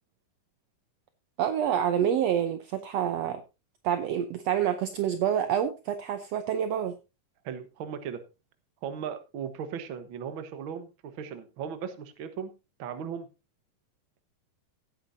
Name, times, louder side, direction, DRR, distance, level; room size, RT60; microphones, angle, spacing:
voice 1, 1.4-3.4 3.8-6.9, right 9 dB, 80° right, 9 dB, 1.4 m, -27 dB
voice 2, 7.4-8.2 8.8-12.5 12.8-13.3, right 7 dB, 60° right, 10 dB, 1.4 m, -37 dB
16.5 x 9.2 x 2.7 m, 0.27 s
omnidirectional pair, 3.8 m